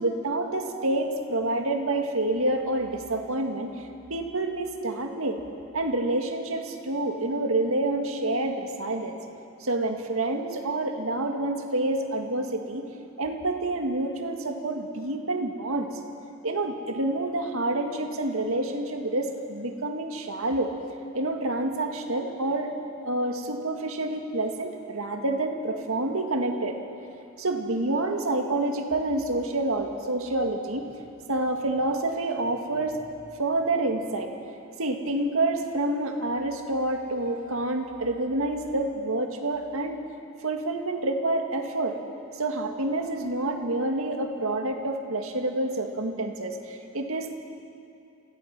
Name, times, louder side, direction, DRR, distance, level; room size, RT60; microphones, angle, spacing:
voice 1, 0.0-5.4 5.7-9.2 9.6-12.9 13.2-15.9 16.4-20.7 21.1-22.7 23.0-26.8 27.4-30.9 31.3-33.0 33.4-34.3 34.8-40.0 40.4-42.0 42.4-47.3, right 2 dB, 80° right, 4 dB, 1.9 m, -28 dB
27.5 x 16.5 x 6.0 m, 2.5 s
head